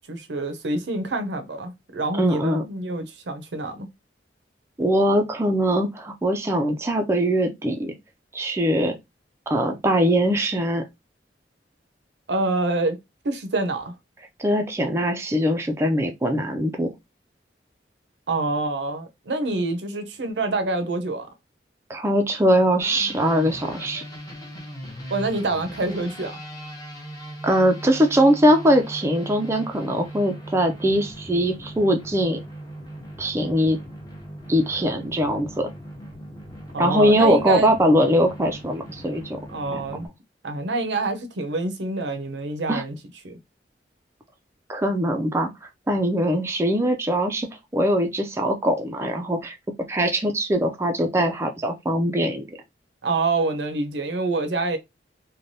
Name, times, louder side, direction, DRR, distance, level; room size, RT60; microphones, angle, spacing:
voice 1, 0.1-3.9 12.3-13.0 13.2-14.0 18.3-21.3 25.1-26.4 36.7-37.7 39.5-40.1 40.4-42.9 43.2-43.4 53.0-54.8, right 2 dB, 80° right, 0.6 m, -26 dB
voice 2, 2.2-2.6 4.8-8.0 8.3-9.0 9.5-10.8 14.4-16.9 21.9-24.0 27.4-32.4 33.2-33.8 34.5-35.7 36.8-39.4 39.7-39.8 42.7-42.8 44.7-47.5 47.7-49.6 49.9-52.6, equal, 15° right, 0.4 m, -21 dB
sound 1, 22.8-40.1, equal, 20° left, 0.8 m, -39 dB
3.2 x 2.2 x 2.6 m
head